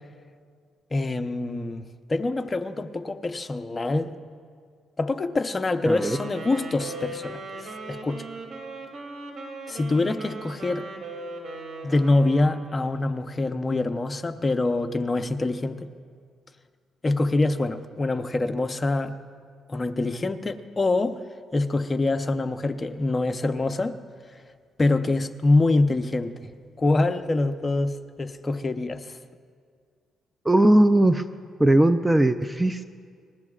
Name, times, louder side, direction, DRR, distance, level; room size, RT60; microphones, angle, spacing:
voice 1, 0.9-4.1 5.0-7.4 7.9-8.3 9.7-10.9 11.8-15.9 17.0-19.2 19.7-21.2 21.5-24.0 24.8-29.1, left 2 dB, 25° left, 0.8 m, -25 dB
Wind instrument woodwind instrument, 5.8-13.1, right 2 dB, 55° right, 2.9 m, -38 dB
voice 2, 5.9-6.2 30.4-31.2 31.6-32.8, right 1 dB, 10° right, 0.5 m, -19 dB
27.5 x 20.5 x 2.5 m
cardioid pair, 90°, 0 cm